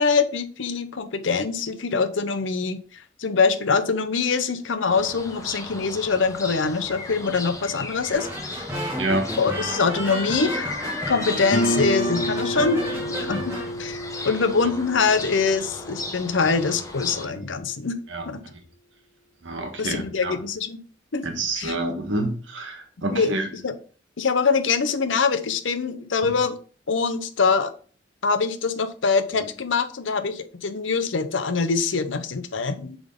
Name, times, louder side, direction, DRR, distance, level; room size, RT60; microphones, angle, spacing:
voice 1, 0.0-8.6 9.4-10.8 11.1-12.8 13.2-13.5 13.8-14.0 14.2-18.0 18.3-18.4 19.8-20.8 21.1-21.2 21.6-21.7 23.1-23.3 23.6-23.8 24.2-26.6 26.9-27.7 28.2-33.0, left 4 dB, 85° left, 9 dB, 0.7 m, -24 dB
sound 1, 4.9-17.3, left 2 dB, 15° left, 0.8 m, -36 dB
sound 2, 8.1-13.7, equal, 15° right, 2.1 m, -32 dB
voice 2, 9.0-9.3 17.2-17.4 18.1-18.2 19.4-20.4 21.2-23.5 26.2-26.3, right 2 dB, 85° right, 4 dB, 1.4 m, -28 dB
Guitar, 11.5-16.9, equal, 40° left, 0.5 m, -30 dB
7.1 x 3.7 x 3.7 m, 0.41 s
head